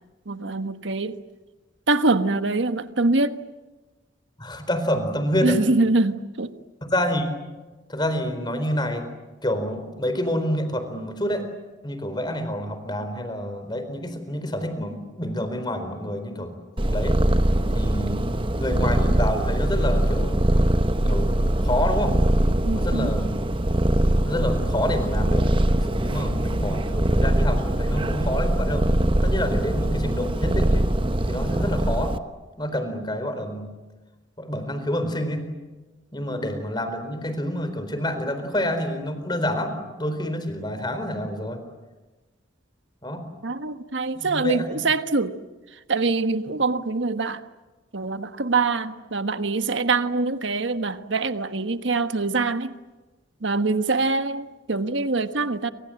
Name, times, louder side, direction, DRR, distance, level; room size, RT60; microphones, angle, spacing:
voice 1, 0.3-1.2 1.9-3.4 5.4-6.5 18.1-18.2 22.6-23.1 43.4-45.4 45.9-47.4 47.9-52.7 53.4-55.7, right 3 dB, 75° right, 10 dB, 1.4 m, -24 dB
voice 2, 4.4-5.6 6.9-7.3 7.9-9.0 9.4-11.5 11.8-16.5 16.9-17.2 17.7-18.2 18.6-20.4 21.1-21.3 21.6-22.2 22.7-23.4 24.3-28.9 29.2-30.9 31.3-32.2 32.6-33.7 34.4-35.5 36.1-41.6 43.0-43.3 44.1-44.8, left 1 dB, 20° left, 9 dB, 4.2 m, -28 dB
Purr, 16.8-32.2, right 1 dB, 25° right, 0.9 m, -22 dB
28.5 x 26.0 x 7.8 m, 1.2 s
head